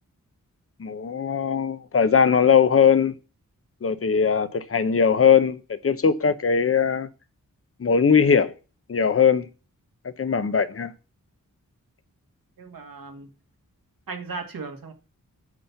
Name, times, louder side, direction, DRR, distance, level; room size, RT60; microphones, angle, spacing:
voice 1, 0.8-3.1 3.8-7.1 7.8-8.5 8.9-9.5 10.2-10.9, left 6 dB, 40° left, 0.8 m, -20 dB
voice 2, 12.6-13.3 14.1-14.9, right 4 dB, 80° right, 1.7 m, -36 dB
9.2 x 4.3 x 6.9 m
wide cardioid pair, 135°, 34 cm